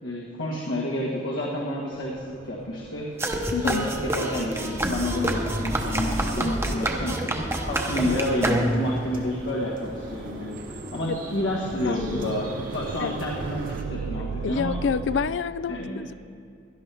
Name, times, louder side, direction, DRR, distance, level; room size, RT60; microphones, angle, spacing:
voice 1, 0.0-3.1 3.5-3.9 4.1-14.7 15.7-16.1, left 1 dB, 85° left, -4 dB, 1.6 m, -30 dB
sound 1, 1.9-15.3, right 5 dB, 85° right, 0.4 m, -40 dB
sound 2, 3.2-9.0, right 1 dB, 15° right, 0.8 m, -28 dB
voice 2, 3.5-3.9 11.1-11.2 11.8-12.4 13.0-13.1 14.4-16.1, left 6 dB, 70° left, 15 dB, 0.4 m, -28 dB
sound 3, 4.9-13.8, right 1 dB, 45° right, 1.1 m, -37 dB
16.5 x 11.5 x 3.4 m, 2.5 s
head